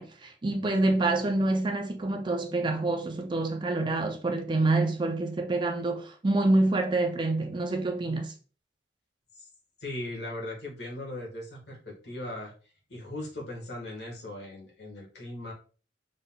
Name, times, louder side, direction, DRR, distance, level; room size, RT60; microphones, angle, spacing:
voice 1, 0.0-8.3, right 2 dB, 25° right, 0.4 m, -27 dB
voice 2, 9.8-12.5 12.9-15.5, left 1 dB, 65° left, 1.4 m, -38 dB
3.8 x 3.6 x 2.2 m
head